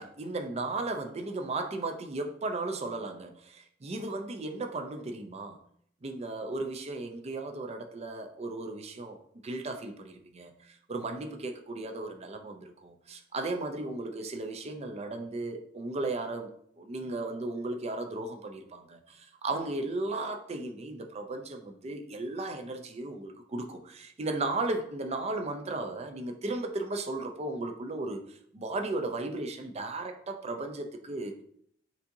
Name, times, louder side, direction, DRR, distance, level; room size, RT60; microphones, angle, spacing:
voice 1, 0.0-5.6 6.0-9.2 9.4-16.5 16.8-31.3, right 2 dB, 35° right, 5 dB, 0.5 m, -35 dB
7.0 x 2.7 x 2.6 m, 0.68 s
head